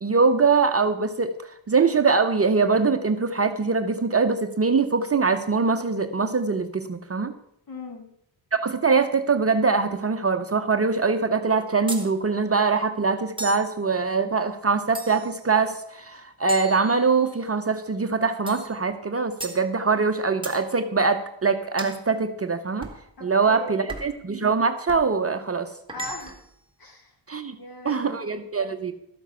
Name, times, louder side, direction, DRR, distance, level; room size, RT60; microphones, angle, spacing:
voice 1, 0.0-1.3 1.7-7.3 8.5-22.9 23.2-25.7 27.3-27.6 27.8-28.9, right 4 dB, 30° right, 7 dB, 0.7 m, -23 dB
voice 2, 7.7-8.1 23.2-23.9 25.9-26.4 26.8-27.1 27.6-28.2, left 2 dB, 45° left, 3 dB, 2.7 m, -39 dB
sound 1, 11.9-12.1 13.4-13.7 14.9-15.4 16.5-17.4 18.5-18.7 19.4-19.6 20.4-20.6 21.8-22.0 22.8-23.0 23.9-24.2 24.9-25.1 25.9-26.5, right 3 dB, 10° right, 1.7 m, -36 dB
13.0 x 7.1 x 5.6 m, 0.78 s
cardioid pair, 85°, 47 cm